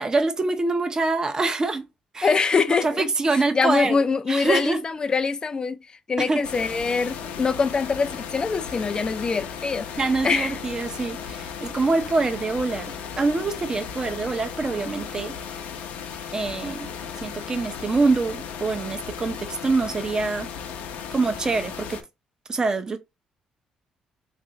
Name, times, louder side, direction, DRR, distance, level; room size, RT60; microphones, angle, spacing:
voice 1, 0.0-1.8 2.1-2.4 2.8-4.0 4.3-4.8 6.2-6.4 10.0-15.3 16.3-16.9 17.2-20.5 21.1-22.0 22.5-23.0, right 3 dB, 25° right, 0.6 m, -25 dB
voice 2, 2.2-3.1 3.3-5.8 6.1-10.5, left 5 dB, 30° left, 0.5 m, -24 dB
sound 1, 6.4-22.0, left 7 dB, 85° left, 0.7 m, -36 dB
3.3 x 2.5 x 3.8 m
cardioid pair, 100°, 3 cm